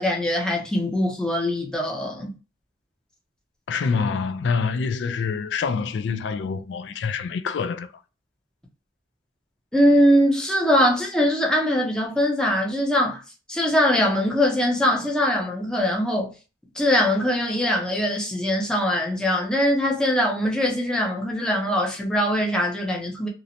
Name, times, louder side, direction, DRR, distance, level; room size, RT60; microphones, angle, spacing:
voice 1, 0.0-2.3 9.7-13.2 13.5-16.3 16.8-23.3, equal, 5° left, 0.5 m, -22 dB
voice 2, 3.7-7.9, left 5 dB, 85° left, 0.3 m, -26 dB
2.6 x 2.1 x 2.7 m
head